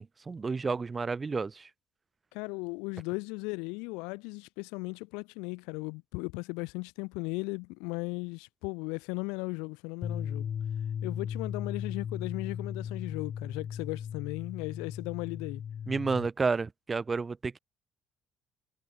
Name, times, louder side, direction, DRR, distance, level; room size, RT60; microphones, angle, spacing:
voice 1, 0.0-1.7 15.9-17.6, right 4 dB, 30° right, 0.7 m, -31 dB
voice 2, 2.3-10.5 11.0-15.6, left 30 dB, 70° left, 0.4 m, -37 dB
sound 1, 10.0-16.3, left 8 dB, 50° left, 0.9 m, -37 dB
figure-of-eight pair, 50°, 0 cm